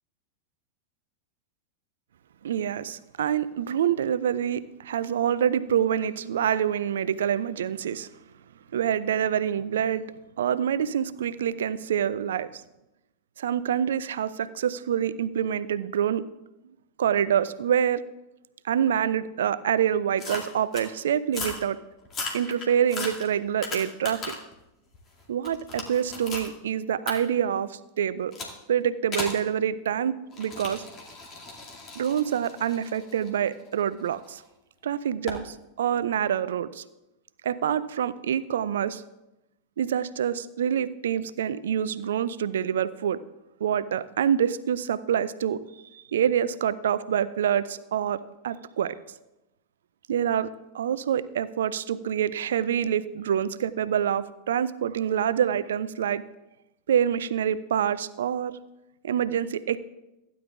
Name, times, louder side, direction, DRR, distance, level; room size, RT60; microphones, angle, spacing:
voice 1, 2.4-8.1 8.7-10.1 10.4-12.6 13.4-16.3 17.0-18.0 18.6-21.8 22.3-24.3 25.3-28.3 28.7-30.8 31.9-34.4 34.8-36.8 37.4-39.0 39.8-43.2 43.6-45.6 45.9-48.9 50.1-50.5 50.7-56.2 56.9-58.6 59.0-59.8, right 9 dB, 60° right, 16 dB, 0.4 m, -26 dB
sound 1, 20.2-20.9 21.3-21.6 22.0-24.5 24.9-26.5 27.1-27.2 28.3-28.6 29.1-29.4 30.3-34.3 35.3-35.4, left 3 dB, 25° left, 2.3 m, -36 dB
16.0 x 10.0 x 2.4 m, 0.94 s
figure-of-eight pair, 90°, 0 cm